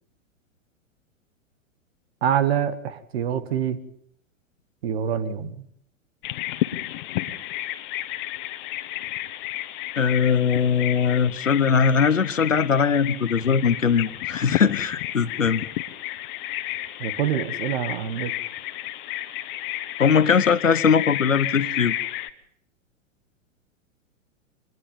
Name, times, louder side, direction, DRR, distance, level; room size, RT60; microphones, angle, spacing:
voice 1, 2.2-3.8 4.8-5.6 17.0-18.3, right 9 dB, 50° right, 12 dB, 2.2 m, -25 dB
Bird vocalization bird call bird song, 6.2-22.3, left 15 dB, 40° left, 1.5 m, -31 dB
voice 2, 10.0-15.6 20.0-21.9, left 6 dB, 80° left, 17 dB, 1.1 m, -20 dB
25.5 x 20.0 x 5.5 m, 0.68 s
figure-of-eight pair, 105°, 39 cm